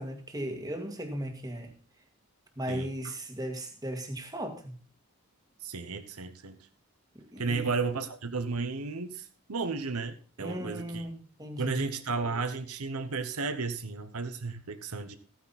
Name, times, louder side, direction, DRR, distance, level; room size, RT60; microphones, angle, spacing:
voice 1, 0.0-1.7 2.6-4.8 7.2-7.7 10.4-11.9, equal, 15° right, 4 dB, 1.8 m, -37 dB
voice 2, 5.6-6.6 7.4-11.0 11.6-15.2, right 4 dB, 90° right, 8 dB, 1.0 m, -33 dB
14.5 x 9.5 x 4.2 m, 0.42 s
head